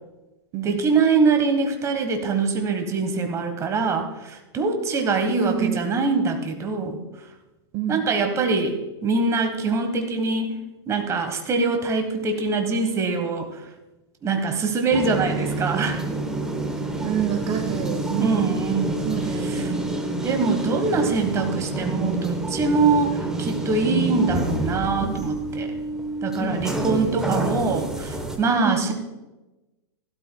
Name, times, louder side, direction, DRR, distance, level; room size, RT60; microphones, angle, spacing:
voice 1, 0.6-7.0 7.9-10.5 10.9-13.6 14.2-16.0 18.2-19.1 19.4-19.7 20.2-25.7 26.2-28.9, right 4 dB, 20° right, 6 dB, 1.3 m, -23 dB
voice 2, 5.4-5.8 7.7-8.1 17.0-18.5 19.0-19.9 21.0-21.2 26.9-27.2 28.5-28.9, right 9 dB, 35° right, 5 dB, 1.0 m, -28 dB
sound 1, 14.9-28.4, right 2 dB, 5° right, 1.1 m, -28 dB
15.5 x 12.0 x 2.3 m, 1.1 s
hypercardioid pair, 145°, 15 cm